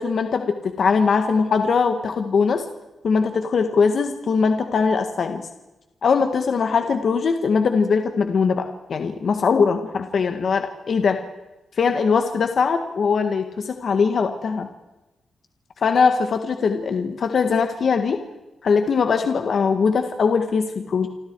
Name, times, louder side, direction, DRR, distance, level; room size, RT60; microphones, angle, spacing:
voice 1, 0.0-2.6 3.0-5.4 6.0-11.2 11.8-14.7 15.8-18.2 18.6-21.1, left 5 dB, 50° left, 6 dB, 1.7 m, -21 dB
29.0 x 25.5 x 4.7 m, 1.0 s
wide cardioid pair, 165°, 0 cm